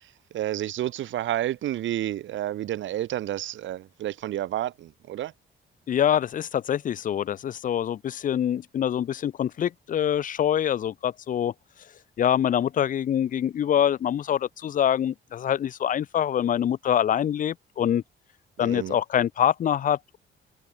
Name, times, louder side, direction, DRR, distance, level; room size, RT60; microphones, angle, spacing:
voice 1, 0.3-5.3 18.6-19.0, right 13 dB, 75° right, 1.3 m, -30 dB
voice 2, 5.9-11.5 12.2-18.0 18.6-20.2, left 10 dB, 45° left, 0.5 m, -25 dB
cardioid pair, 90°, 20 cm